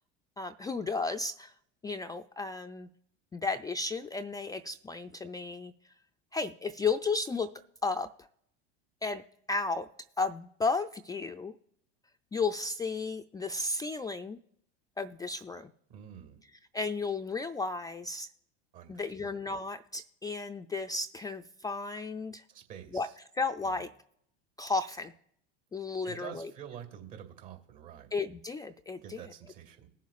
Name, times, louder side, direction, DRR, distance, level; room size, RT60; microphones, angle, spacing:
voice 1, 0.4-1.5 1.8-2.9 3.3-5.7 6.3-7.5 7.8-8.1 9.0-9.2 9.5-9.9 10.2-11.5 12.3-14.4 15.0-15.7 16.7-18.3 18.9-22.4 22.9-23.1 23.4-23.9 24.6-25.1 25.7-26.5 28.1-29.2, left 3 dB, 10° left, 5 dB, 0.3 m, -33 dB
voice 2, 15.9-16.4 18.7-19.4 22.5-23.2 23.6-23.9 26.0-28.1 29.0-29.9, right 9 dB, 60° right, 4 dB, 2.4 m, -47 dB
20.0 x 7.3 x 2.5 m, 0.72 s
hypercardioid pair, 80°, 33 cm